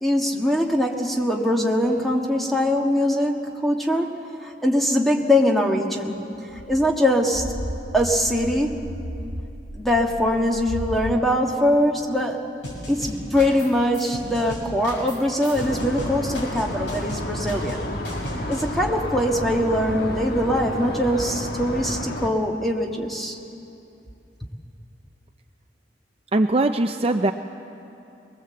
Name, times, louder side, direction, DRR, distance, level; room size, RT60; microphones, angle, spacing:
voice 1, 0.0-7.5 7.9-8.8 9.8-12.4 12.9-17.8 18.3-23.4, left 1 dB, ahead, 1 dB, 1.5 m, -22 dB
sound 1, 6.5-11.2, equal, 80° right, 1.3 m, -34 dB
sound 2, 12.6-13.7 13.9-18.6, equal, 80° left, 6.9 m, -35 dB
sound 3, 15.5-22.3, left 1 dB, 55° left, 1.5 m, -31 dB
voice 2, 26.3-27.3, right 2 dB, 35° right, 6 dB, 0.5 m, -20 dB
22.5 x 20.0 x 7.7 m, 2.8 s
head